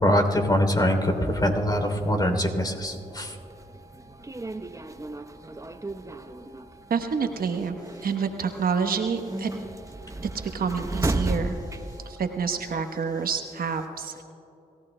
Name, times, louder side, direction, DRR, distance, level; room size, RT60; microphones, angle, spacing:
voice 1, 0.0-3.4, equal, 25° left, 4 dB, 3.1 m, -23 dB
sound 1, 0.9-12.9, right 2 dB, 20° right, 0.8 m, -35 dB
voice 2, 6.9-7.8 8.0-9.5 10.5-11.6 12.1-14.2, right 6 dB, 65° right, 6 dB, 1.0 m, -28 dB
26.5 x 15.5 x 2.2 m, 2.9 s
supercardioid pair, 45°, 16 cm